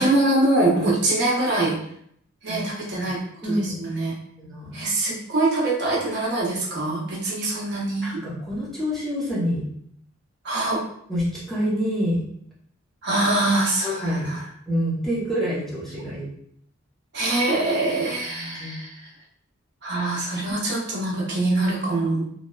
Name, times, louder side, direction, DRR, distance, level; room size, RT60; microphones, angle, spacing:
voice 1, 0.0-1.8 2.4-3.2 3.4-4.2 4.7-8.2 10.4-10.8 13.0-14.4 17.1-19.1 19.8-22.3, right 2 dB, 60° right, -4 dB, 0.8 m, -24 dB
voice 2, 3.4-3.8 4.4-4.7 8.0-9.6 11.1-12.2 13.8-14.3 14.7-16.3 18.3-18.8, equal, ahead, -8 dB, 0.7 m, -27 dB
2.9 x 2.0 x 2.2 m, 0.68 s
head